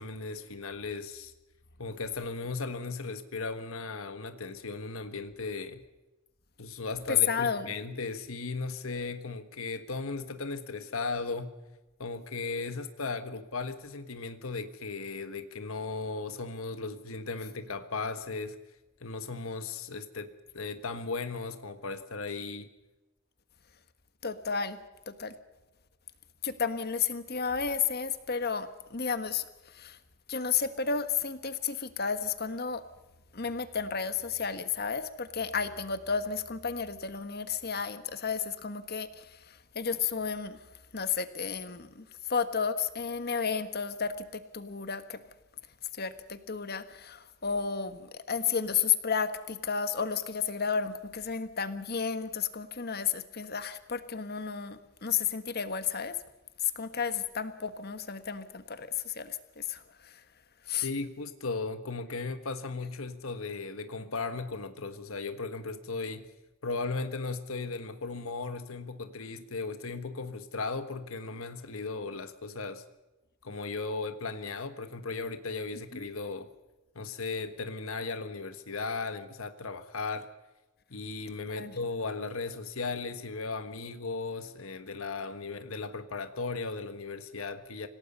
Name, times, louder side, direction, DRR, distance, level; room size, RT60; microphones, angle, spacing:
voice 1, 0.0-1.3 1.8-5.8 6.6-11.5 12.0-18.6 19.0-22.7 60.8-66.3 66.6-72.8 73.4-76.5 76.9-80.3 80.9-87.9, left 3 dB, 90° left, 9 dB, 1.4 m, -36 dB
voice 2, 7.1-7.7 24.2-24.8 25.1-25.3 26.4-30.0 30.3-32.8 33.3-40.6 40.9-45.2 45.9-56.2 56.6-60.2 60.6-60.9 75.9-76.1 81.5-81.7, left 6 dB, 50° left, 11 dB, 1.5 m, -32 dB
26.5 x 18.0 x 5.5 m, 1.0 s
head